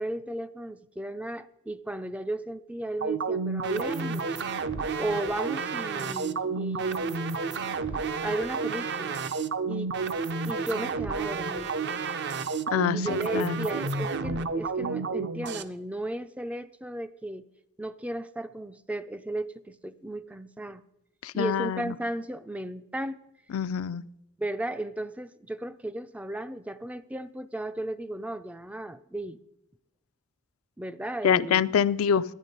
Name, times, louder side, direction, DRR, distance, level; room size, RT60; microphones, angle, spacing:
voice 1, 0.0-4.4 5.0-7.4 8.2-9.2 9.7-10.0 10.4-11.7 12.9-17.4 17.8-20.8 21.3-23.2 24.4-29.4 30.8-31.6, right 1 dB, 5° right, 12 dB, 0.3 m, -35 dB
sound 1, 3.0-15.6, right 4 dB, 55° right, 0.6 m, -30 dB
voice 2, 12.7-13.6 21.2-21.9 23.5-24.0 31.2-32.2, left 8 dB, 70° left, 15 dB, 0.4 m, -26 dB
11.0 x 9.8 x 5.2 m, 0.86 s
head